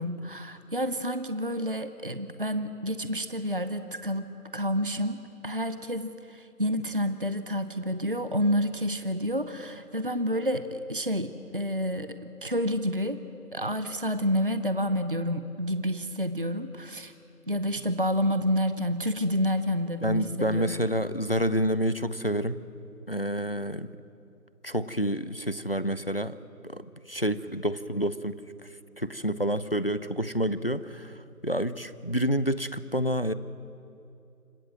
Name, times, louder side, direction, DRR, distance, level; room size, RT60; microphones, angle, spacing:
voice 1, 0.0-4.2 4.5-13.2 13.5-17.1 17.5-20.7, equal, 35° right, 11 dB, 0.7 m, -29 dB
voice 2, 20.0-22.6 23.1-23.9 24.6-26.4 26.6-26.8 27.1-28.4 29.0-31.1 31.4-33.3, equal, 40° left, 15 dB, 0.5 m, -28 dB
26.5 x 16.0 x 7.7 m, 2.6 s
figure-of-eight pair, 170°, 46 cm